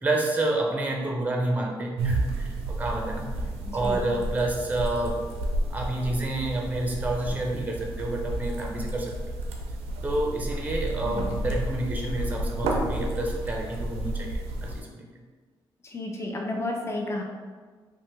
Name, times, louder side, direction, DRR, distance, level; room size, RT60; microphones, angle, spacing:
voice 1, 0.0-3.3 3.7-5.3 5.7-9.4 10.0-15.0, right 2 dB, 15° right, 0 dB, 0.6 m, -29 dB
sound 1, 2.0-14.8, right 1 dB, 85° right, 0.4 m, -31 dB
voice 2, 11.0-11.4 15.8-17.2, left 2 dB, 25° left, 0 dB, 0.6 m, -32 dB
2.8 x 2.1 x 3.2 m, 1.5 s
supercardioid pair, 50°, 10 cm